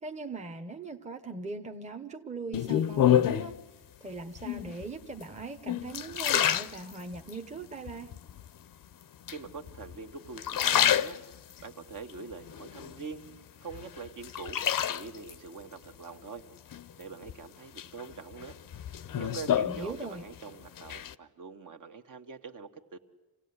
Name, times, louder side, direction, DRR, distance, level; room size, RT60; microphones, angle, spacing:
voice 1, 0.0-3.6 4.0-8.1 19.6-20.2, right 3 dB, 20° right, 5 dB, 1.0 m, -40 dB
sound 1, 2.5-3.6 4.4-4.9 5.4-7.4 7.9-8.5 9.3-10.0 10.3-11.6 12.1-13.3 13.7-15.4 16.7-17.3 17.8-20.4 20.6-21.1, left 10 dB, 60° left, 0.7 m, -28 dB
voice 2, 9.3-11.2 11.6-13.2 13.6-16.5 17.0-18.6 19.2-23.0, right 4 dB, 55° right, 5 dB, 1.6 m, -44 dB
27.0 x 17.5 x 9.6 m, 1.3 s
wide cardioid pair, 145°, 38 cm